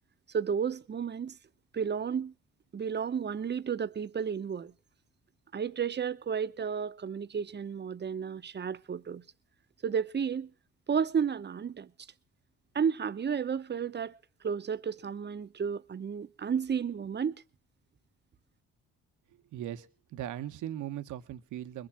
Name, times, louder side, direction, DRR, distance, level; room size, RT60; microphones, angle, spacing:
voice 1, 0.3-1.4 1.7-2.3 2.7-4.7 5.5-9.2 9.8-10.5 10.9-11.9 12.7-14.1 14.4-17.4, right 7 dB, 35° right, 1.0 m, -32 dB
voice 2, 19.5-21.9, right 11 dB, 80° right, 1.3 m, -39 dB
21.5 x 7.6 x 7.3 m
cardioid pair, 90°, 30 cm